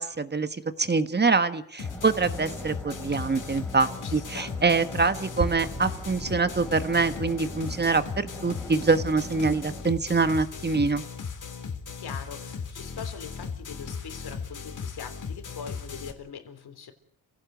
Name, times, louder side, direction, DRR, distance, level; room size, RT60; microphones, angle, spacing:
voice 1, 0.0-11.0, right 4 dB, 25° right, 11 dB, 1.4 m, -25 dB
sound 1, 1.8-16.1, left 5 dB, 50° left, 3.4 m, -37 dB
sound 2, 1.8-9.8, equal, 5° left, 3.3 m, -43 dB
voice 2, 4.0-4.5 12.0-16.9, left 7 dB, 75° left, 8 dB, 3.6 m, -42 dB
sound 3, 5.4-9.8, right 5 dB, 55° right, 4.0 m, -40 dB
28.0 x 17.0 x 7.9 m, 0.67 s
cardioid pair, 105°, 38 cm